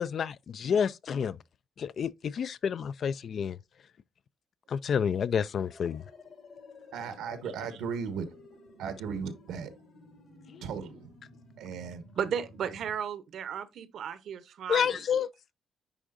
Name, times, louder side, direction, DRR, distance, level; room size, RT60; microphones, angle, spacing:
voice 1, 0.0-1.4 1.8-3.6 4.7-6.0 10.5-10.6 14.7-15.3, left 7 dB, 55° left, 0.3 m, -29 dB
sound 1, 5.6-13.0, left 2 dB, 70° left, 3.6 m, -54 dB
voice 2, 6.9-8.3 8.8-9.7 10.6-11.1 11.6-12.0, right 6 dB, 85° right, 1.1 m, -36 dB
voice 3, 12.2-15.0, right 8 dB, 70° right, 0.8 m, -34 dB
10.0 x 3.6 x 2.6 m
cardioid pair, 90°, 0 cm